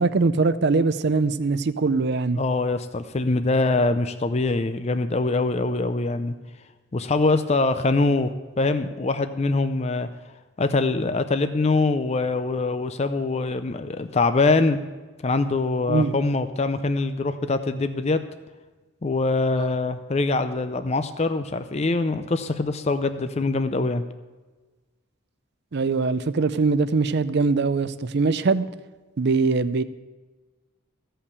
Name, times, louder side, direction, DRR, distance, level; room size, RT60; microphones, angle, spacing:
voice 1, 0.0-2.4 15.9-16.1 19.6-19.7 25.7-28.6 29.2-29.8, right 4 dB, 50° right, 13 dB, 0.5 m, -22 dB
voice 2, 2.4-6.3 6.9-8.3 8.6-10.1 10.6-14.8 15.2-18.2 19.0-24.0, left 3 dB, 30° left, 10 dB, 0.5 m, -23 dB
15.0 x 5.7 x 6.7 m, 1.3 s
head